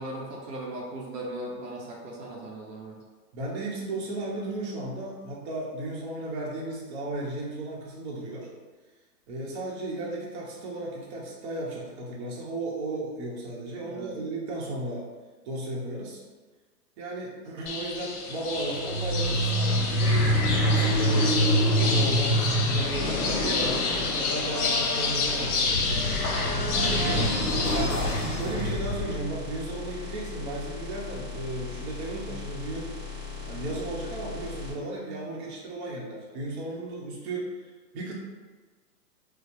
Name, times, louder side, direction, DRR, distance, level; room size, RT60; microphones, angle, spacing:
voice 1, 0.0-3.0 13.8-14.1 27.1-28.0 28.3-28.4, right 2 dB, 70° right, -2 dB, 0.9 m, -37 dB
voice 2, 3.3-8.5 9.3-15.0 15.4-16.2 17.0-23.9 24.2-25.6 26.7-27.5 28.3-33.0 33.4-37.5 37.9-38.1, right 2 dB, 40° right, -4 dB, 1.0 m, -35 dB
sound 1, 17.7-27.8, left 4 dB, 60° left, 0.8 m, -29 dB
sound 2, 18.7-29.2, equal, 35° left, 1.4 m, -26 dB
sound 3, 26.7-34.7, left 4 dB, ahead, 0.5 m, -38 dB
4.2 x 2.2 x 2.7 m, 1.4 s
hypercardioid pair, 130°, 50 cm